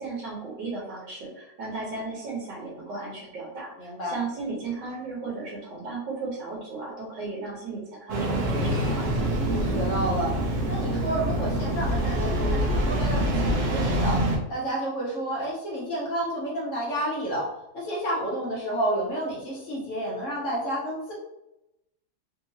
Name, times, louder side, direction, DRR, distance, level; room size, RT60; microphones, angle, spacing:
voice 1, 0.0-9.3, right 3 dB, 75° right, -5 dB, 1.6 m, -35 dB
voice 2, 3.8-4.1 9.5-10.3 10.7-14.1 14.5-17.4 17.7-21.1, right 1 dB, 55° left, -4 dB, 1.0 m, -30 dB
Engine starting, 8.1-14.4, right 1 dB, 55° right, 0.9 m, -25 dB
3.5 x 2.8 x 2.8 m, 0.87 s
omnidirectional pair, 1.9 m